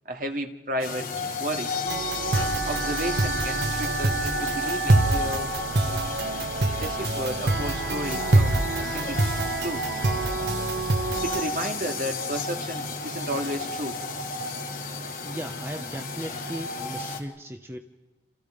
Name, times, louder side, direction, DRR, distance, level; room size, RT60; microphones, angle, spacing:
voice 1, 0.1-1.1 1.4-1.7 2.7-5.6 6.8-9.8 11.2-14.0, equal, 45° right, 4 dB, 2.2 m, -33 dB
sound 1, 0.8-17.2, left 2 dB, 50° left, 3.3 m, -32 dB
sound 2, 1.9-11.4, right 2 dB, 60° right, 1.1 m, -26 dB
voice 2, 15.2-17.8, equal, 15° right, 6 dB, 0.9 m, -37 dB
29.0 x 27.5 x 5.2 m, 1.2 s
head